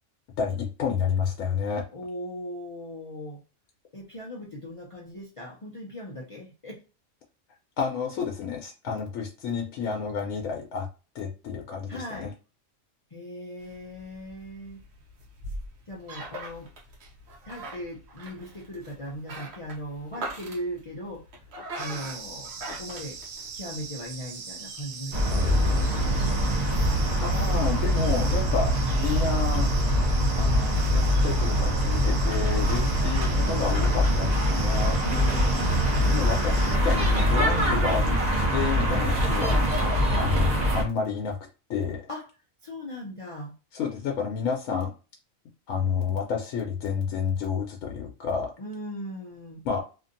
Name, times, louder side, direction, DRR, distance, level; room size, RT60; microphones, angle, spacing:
voice 1, 0.4-1.8 7.8-10.9 11.1-12.3 27.2-29.7 30.4-35.0 36.1-38.0 38.5-39.6 40.1-41.4 41.7-42.0 43.7-44.9 45.7-48.5 49.6-49.8, left 6 dB, 80° left, 0 dB, 1.0 m, -30 dB
voice 2, 1.9-3.4 3.9-6.8 11.9-12.3 13.1-14.8 15.9-16.7 17.4-21.2 21.8-23.2 23.5-26.4 35.0-36.1 42.1-42.2 42.6-43.5 48.6-49.6, equal, 55° left, -3 dB, 0.3 m, -38 dB
sound 1, 13.6-23.9, right 2 dB, 60° right, 1.0 m, -41 dB
sound 2, 21.8-36.8, right 5 dB, 85° right, 1.0 m, -41 dB
sound 3, 25.1-40.8, equal, 40° right, 0.8 m, -23 dB
2.8 x 2.5 x 2.5 m, 0.33 s
omnidirectional pair, 1.4 m